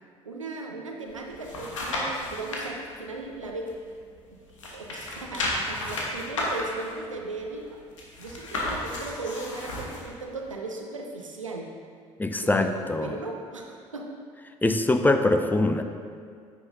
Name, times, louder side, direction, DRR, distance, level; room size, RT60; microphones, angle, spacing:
voice 1, 0.2-3.7 4.7-7.8 8.2-11.7 12.4-14.1, right 3 dB, 85° right, 1 dB, 0.7 m, -37 dB
sound 1, 1.1-2.7 3.2-4.3 4.5-10.1 10.5-10.6, left 1 dB, 80° left, 1.1 m, -33 dB
voice 2, 12.2-13.2 14.6-15.8, left 2 dB, 10° left, 7 dB, 0.6 m, -23 dB
9.5 x 8.4 x 2.6 m, 2.2 s
figure-of-eight pair, 55°, 16 cm